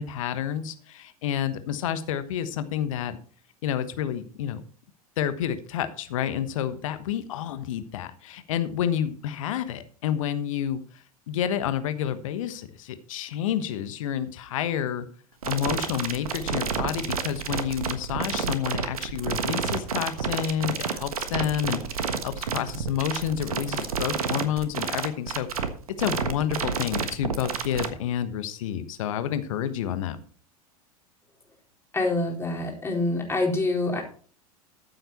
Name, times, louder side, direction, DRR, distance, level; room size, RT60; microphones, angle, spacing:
voice 1, 0.0-3.2 3.6-4.6 5.2-15.1 15.4-25.5 26.0-30.2, left 10 dB, 60° left, 11 dB, 1.2 m, -29 dB
sound 1, 15.4-27.9, right 6 dB, 75° right, 1.4 m, -29 dB
voice 2, 31.9-34.0, left 2 dB, 15° left, 0 dB, 4.2 m, -26 dB
14.0 x 8.0 x 4.2 m, 0.43 s
figure-of-eight pair, 85°, 19 cm